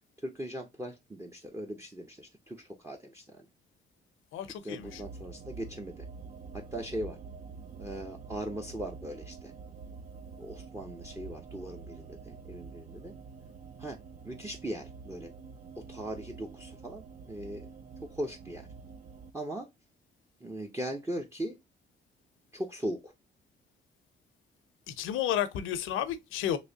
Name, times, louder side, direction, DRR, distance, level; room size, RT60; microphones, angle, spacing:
voice 1, 0.2-3.5 4.4-6.1 6.5-7.2 7.8-9.5 10.4-13.1 13.8-14.0 14.2-15.3 15.8-17.7 18.0-18.7 19.3-19.7 20.4-21.6 22.5-23.1, right 1 dB, 15° right, 0.7 m, -39 dB
voice 2, 4.3-5.0 24.9-26.6, left 10 dB, 90° left, 0.6 m, -32 dB
sound 1, 4.8-19.3, right 5 dB, 45° right, 0.4 m, -47 dB
3.1 x 3.1 x 2.6 m
cardioid pair, 90°, 20 cm